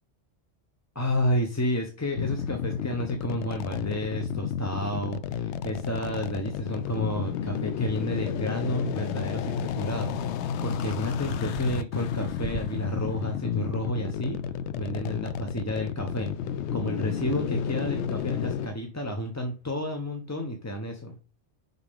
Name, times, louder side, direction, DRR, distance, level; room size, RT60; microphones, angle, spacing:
voice 1, 0.9-14.4 14.7-16.3 16.7-21.1, equal, 15° left, 4 dB, 0.7 m, -31 dB
sound 1, 2.2-18.7, left 8 dB, 80° left, 0.9 m, -31 dB
sound 2, 10.8-13.1, right 8 dB, 60° right, 0.7 m, -41 dB
10.0 x 4.1 x 3.6 m, 0.36 s
omnidirectional pair, 1.2 m